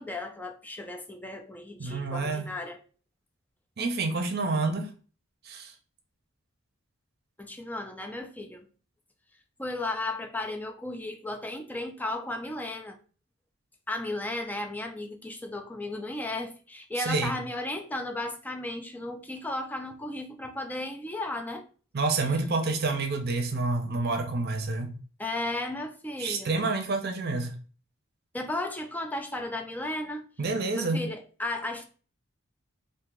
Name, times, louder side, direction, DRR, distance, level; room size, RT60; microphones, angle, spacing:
voice 1, 0.0-2.8 7.4-8.7 9.6-13.0 13.9-21.6 25.2-26.6 28.3-30.2 30.8-31.8, left 2 dB, 10° left, 0.4 m, -35 dB
voice 2, 1.8-2.5 3.8-4.9 5.4-5.7 17.0-17.3 21.9-24.9 26.2-27.5 30.4-31.0, right 3 dB, 50° right, 0.7 m, -28 dB
2.9 x 2.6 x 3.7 m
head